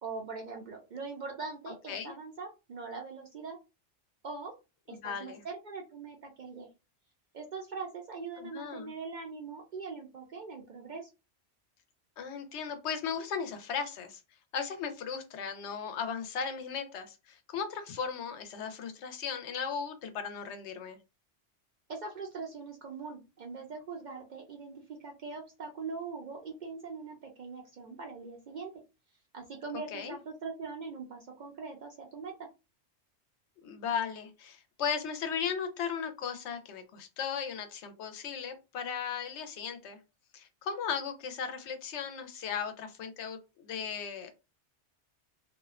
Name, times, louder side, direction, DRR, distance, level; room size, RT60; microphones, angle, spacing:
voice 1, 0.0-3.6 4.2-4.5 4.9-6.7 7.3-11.1 21.9-28.7 29.3-32.5, right 4 dB, 60° right, 1 dB, 0.5 m, -42 dB
voice 2, 4.9-5.4 8.4-8.9 12.2-14.2 14.5-21.0 29.9-30.1 33.6-40.0 40.3-44.4, left 7 dB, 75° left, 8 dB, 0.9 m, -36 dB
2.5 x 2.1 x 2.3 m, 0.27 s
omnidirectional pair, 1.2 m